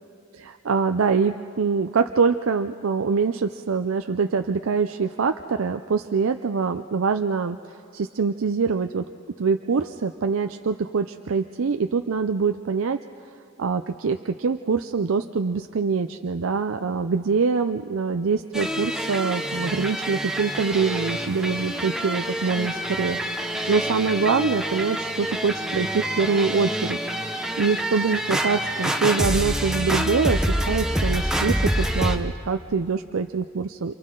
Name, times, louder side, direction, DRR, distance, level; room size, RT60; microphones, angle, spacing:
voice 1, 0.3-9.0 9.4-13.0 13.6-27.0 27.6-33.9, right 5 dB, 75° right, 7 dB, 0.5 m, -24 dB
sound 1, 18.5-32.2, equal, 5° right, 0.9 m, -27 dB
29.0 x 27.5 x 3.8 m, 2.5 s
head